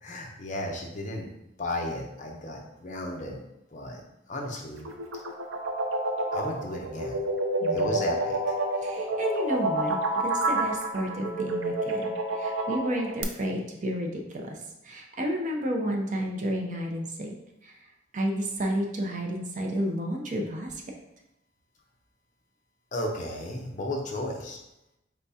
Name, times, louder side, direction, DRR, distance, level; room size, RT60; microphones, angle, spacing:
voice 1, 0.0-1.3 1.6-3.4 3.7-4.0 4.3-4.9 5.1-5.2 6.3-7.2 7.7-8.5 22.9-24.6, left 1 dB, 40° left, 0 dB, 0.6 m, -34 dB
sound 1, 4.7-13.2, right 2 dB, 80° right, 0.5 m, -28 dB
voice 2, 7.6-8.0 8.8-14.6 14.8-17.3 17.6-20.8, equal, 40° right, 1 dB, 0.6 m, -31 dB
4.4 x 3.5 x 2.7 m, 0.88 s
head